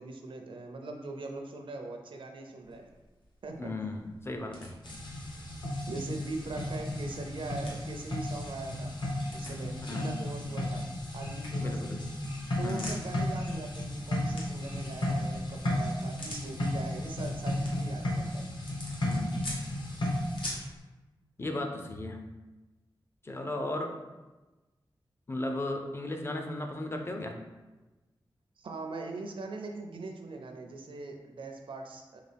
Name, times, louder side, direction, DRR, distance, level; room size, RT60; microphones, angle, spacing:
voice 1, 0.0-2.9 3.4-3.7 5.9-8.9 9.3-10.9 11.1-11.9 12.6-18.5 28.6-32.2, right 3 dB, 75° right, 3 dB, 0.5 m, -41 dB
sound 1, 2.6-20.8, left 1 dB, 75° left, 1.2 m, -48 dB
voice 2, 3.6-4.7 9.9-10.2 11.6-12.1 12.6-12.9 19.0-19.5 21.4-22.3 23.2-24.0 25.3-27.4, left 2 dB, 30° left, 3 dB, 0.5 m, -36 dB
sound 2, 4.8-20.6, left 1 dB, 60° left, 0.9 m, -34 dB
5.0 x 2.4 x 3.4 m, 1.1 s
wide cardioid pair, 115°, 9 cm